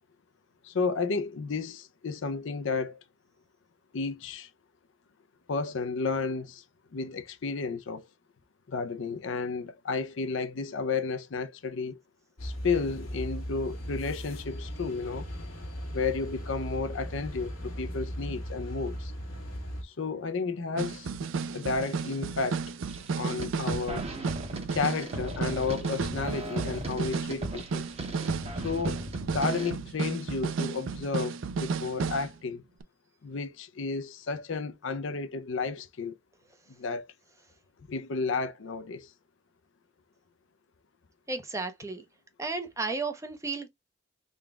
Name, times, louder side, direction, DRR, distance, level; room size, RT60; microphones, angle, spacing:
voice 1, 0.6-3.0 3.9-4.5 5.5-6.6 6.9-8.0 8.7-12.0 12.4-15.3 15.9-19.1 19.8-21.1 21.5-22.6 23.1-24.0 24.7-27.9 28.5-29.1 29.3-32.6 33.2-36.1 36.8-37.1 37.9-39.1, left 4 dB, 65° left, 0.5 m, -32 dB
sound 1, 12.4-19.8, equal, 85° left, 1.5 m, -38 dB
sound 2, 20.8-32.3 32.8-32.9, right 5 dB, 70° right, 0.4 m, -33 dB
sound 3, 22.8-23.1 23.4-29.7, right 1 dB, 30° right, 1.0 m, -38 dB
voice 2, 41.3-42.0 42.4-43.7, right 3 dB, 15° right, 0.7 m, -33 dB
3.8 x 2.3 x 3.4 m
head